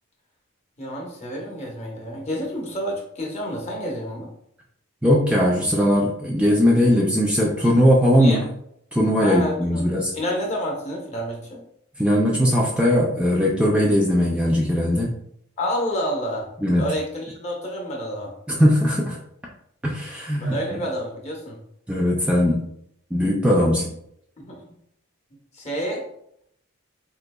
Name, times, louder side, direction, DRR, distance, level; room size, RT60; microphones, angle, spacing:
voice 1, 0.8-4.3 8.2-8.4 9.1-9.9 10.1-11.6 15.6-16.5 16.8-18.3 20.3-21.6 24.4-24.6 25.5-26.1, equal, 35° left, -1 dB, 0.8 m, -29 dB
voice 2, 5.0-8.4 8.9-10.1 12.0-15.1 16.6-16.8 18.5-19.2 19.8-20.8 21.9-22.6 23.1-23.9, equal, 5° right, -3 dB, 0.3 m, -19 dB
3.8 x 2.7 x 2.2 m, 0.72 s
head